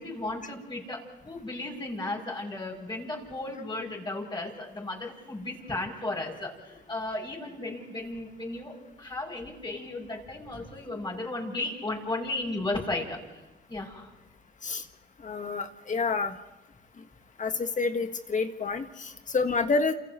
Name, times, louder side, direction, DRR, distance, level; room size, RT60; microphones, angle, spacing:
voice 1, 0.0-13.4 13.7-14.1, left 2 dB, 25° left, -2 dB, 7.9 m, -35 dB
voice 2, 15.2-16.3 17.4-19.9, left 4 dB, 40° left, 7 dB, 1.7 m, -28 dB
29.0 x 29.0 x 3.2 m, 1.1 s
cardioid pair, 90°, 20 cm